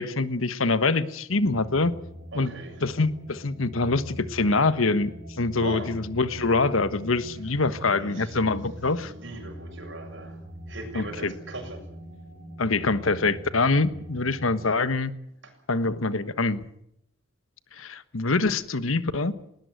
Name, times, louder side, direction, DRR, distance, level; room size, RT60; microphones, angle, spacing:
voice 1, 0.0-1.9 2.3-2.5 2.8-5.1 5.4-9.1 10.9-11.3 12.6-15.1 15.7-16.6 17.8-19.3, left 3 dB, 85° left, 13 dB, 1.3 m, -25 dB
sound 1, 1.3-14.7, equal, 40° right, 6.4 m, -43 dB
voice 2, 2.3-2.8 5.6-5.9 7.7-10.4 10.7-11.8 15.4-15.5, right 2 dB, 60° right, 4 dB, 7.2 m, -40 dB
19.5 x 19.5 x 9.3 m, 0.76 s
head